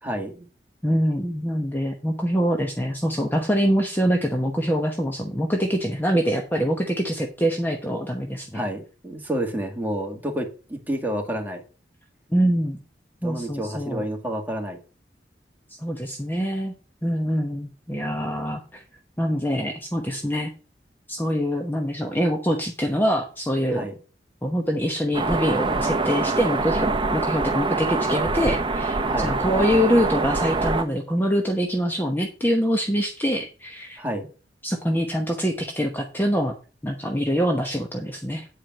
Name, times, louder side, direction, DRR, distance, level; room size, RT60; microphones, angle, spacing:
voice 1, 0.0-0.5 8.5-11.6 13.2-14.8 23.7-24.0 29.1-29.4 34.0-34.3, equal, 10° right, 2 dB, 2.0 m, -29 dB
voice 2, 0.8-8.6 12.3-12.8 13.2-14.0 15.8-16.7 17.0-18.8 19.2-20.5 21.1-23.9 24.4-34.0 34.6-36.5 36.8-38.5, equal, 10° left, 2 dB, 1.0 m, -24 dB
sound 1, 25.1-30.8, right 3 dB, 25° right, 0.8 m, -24 dB
9.2 x 4.9 x 6.0 m, 0.35 s
head